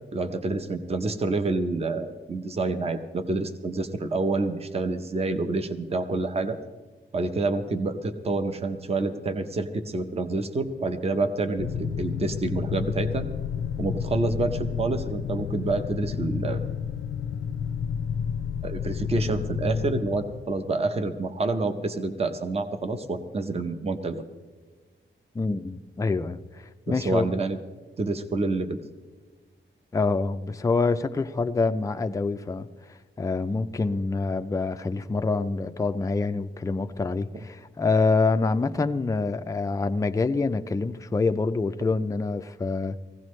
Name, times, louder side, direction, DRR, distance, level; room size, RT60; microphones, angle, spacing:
voice 1, 0.1-6.6 7.1-13.3 13.8-16.6 18.6-24.2 26.9-27.6 28.0-28.8, right 3 dB, 30° right, 0.7 m, -28 dB
sound 1, 11.6-21.2, left 7 dB, 75° left, 0.5 m, -31 dB
voice 2, 25.3-27.3 29.9-32.7 33.2-43.0, left 3 dB, 15° left, 0.4 m, -26 dB
19.0 x 16.0 x 3.2 m
wide cardioid pair, 175°, 21 cm